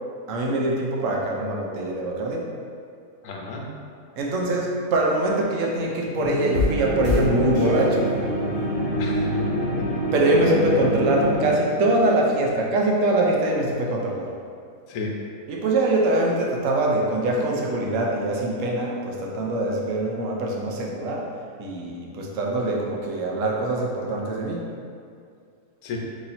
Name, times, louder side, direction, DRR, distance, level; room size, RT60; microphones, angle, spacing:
voice 1, 0.3-2.5 4.2-8.1 10.1-14.3 15.5-21.3 21.6-24.7, right 1 dB, 75° right, -1 dB, 1.0 m, -23 dB
voice 2, 3.2-3.7 9.0-10.1 14.9-15.2 25.8-26.0, left 3 dB, 75° left, 0 dB, 1.0 m, -34 dB
sound 1, 6.2-11.6, equal, 35° left, 0.7 m, -25 dB
3.0 x 2.8 x 4.0 m, 2.3 s
omnidirectional pair, 1.4 m